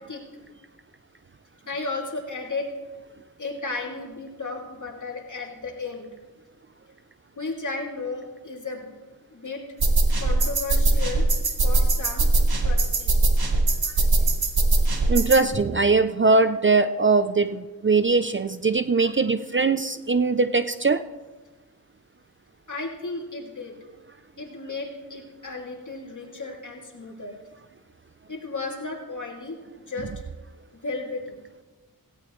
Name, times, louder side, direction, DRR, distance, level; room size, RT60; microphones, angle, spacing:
voice 1, 1.7-2.7 3.4-6.1 7.4-8.9 9.3-9.6 10.2-11.2 11.6-12.3 12.6-13.3 14.9-15.0 22.7-23.8 24.4-27.4 28.3-29.6 29.9-30.1 30.8-31.4, left 3 dB, 55° left, 0 dB, 2.6 m, -34 dB
sound 1, 9.8-15.5, right 2 dB, 85° right, 1.5 m, -21 dB
voice 2, 15.1-21.1, right 4 dB, 35° right, 12 dB, 0.4 m, -21 dB
17.5 x 16.0 x 3.1 m, 1.2 s
wide cardioid pair, 80°, 36 cm